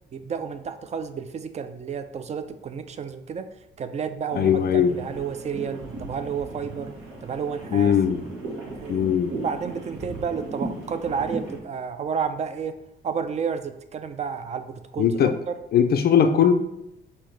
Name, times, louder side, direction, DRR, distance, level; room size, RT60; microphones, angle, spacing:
voice 1, 0.1-3.5 3.8-6.9 7.2-7.9 8.8-9.1 9.4-12.8 13.0-15.5, right 6 dB, 35° right, 10 dB, 0.4 m, -31 dB
sound 1, 4.3-11.6, right 2 dB, 80° right, 1.5 m, -37 dB
voice 2, 4.4-5.0 7.7-8.2 8.9-9.4 15.0-15.4 15.7-16.5, left 8 dB, 50° left, 7 dB, 0.4 m, -19 dB
5.5 x 2.7 x 3.2 m, 0.83 s
cardioid pair, 90°, 20 cm